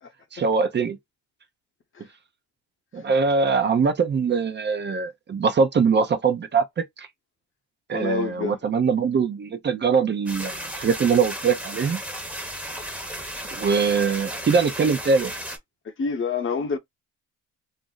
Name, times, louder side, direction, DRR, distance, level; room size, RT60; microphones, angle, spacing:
voice 1, 0.3-1.0 2.9-7.1 7.9-12.0 13.5-15.3, right 5 dB, 35° right, 0.6 m, -22 dB
voice 2, 7.9-8.6 15.8-16.8, left 5 dB, 40° left, 0.8 m, -27 dB
sound 1, 10.3-15.6, equal, 5° right, 0.9 m, -34 dB
2.5 x 2.0 x 3.8 m
cardioid pair, 90°, 30 cm